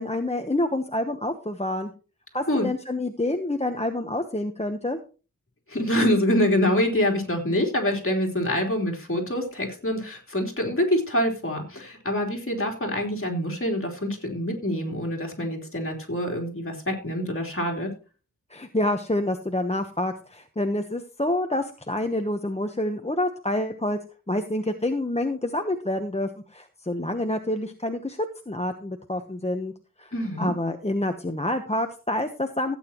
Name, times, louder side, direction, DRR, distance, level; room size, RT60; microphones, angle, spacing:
voice 1, 0.0-1.9 2.3-5.0 18.5-24.0 24.3-28.2 28.5-29.7 30.0-30.1 30.4-32.8, left 1 dB, 20° left, 6 dB, 1.0 m, -27 dB
voice 2, 5.7-17.9 30.1-30.5, left 1 dB, 45° left, 0 dB, 3.7 m, -25 dB
15.5 x 9.0 x 3.0 m, 0.35 s
wide cardioid pair, 55°, 31 cm